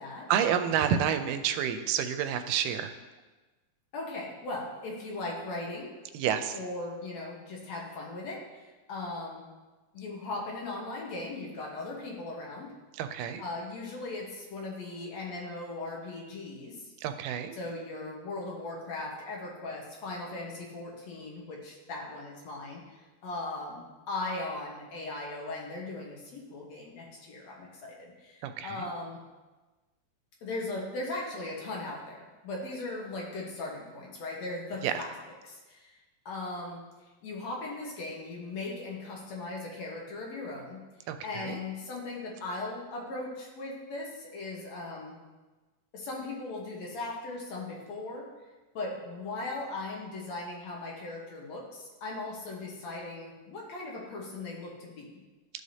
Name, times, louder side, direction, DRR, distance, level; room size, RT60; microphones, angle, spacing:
voice 1, 0.3-3.0 6.1-6.6 12.9-13.4 17.0-17.6 28.4-28.9 34.8-34.9 41.1-41.6, right 9 dB, 85° right, 8 dB, 2.2 m, -29 dB
voice 2, 3.9-5.9 6.5-9.4 9.9-12.7 13.4-16.9 17.6-23.0 23.2-29.2 30.4-35.1 35.4-36.0 36.3-36.8 37.2-40.8 41.2-45.2 45.9-48.3 48.7-55.1, left 2 dB, 65° left, -2 dB, 2.2 m, -38 dB
13.5 x 4.9 x 2.7 m, 1.2 s
omnidirectional pair, 3.7 m